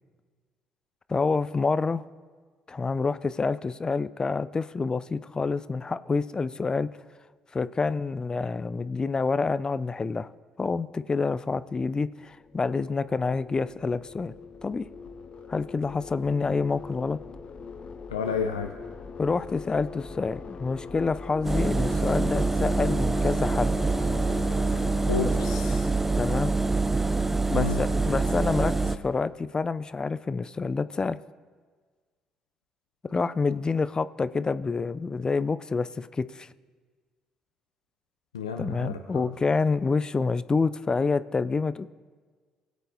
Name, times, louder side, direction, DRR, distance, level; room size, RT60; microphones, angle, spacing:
voice 1, 1.1-2.0 2.7-6.9 7.5-10.3 10.6-14.3 14.6-14.9 15.5-17.2 19.2-23.8 26.2-26.5 27.5-31.2 33.0-36.5 38.6-41.9, left 4 dB, 30° left, 15 dB, 0.4 m, -27 dB
sound 1, 12.1-25.6, left 4 dB, 45° left, 0.8 m, -41 dB
voice 2, 18.1-18.7 25.1-25.9 27.5-27.8 38.3-39.0, left 6 dB, 90° left, 4 dB, 0.5 m, -30 dB
Engine, 21.4-29.0, right 3 dB, 10° right, 0.7 m, -25 dB
20.5 x 8.2 x 2.7 m, 1.5 s
hypercardioid pair, 50°, 3 cm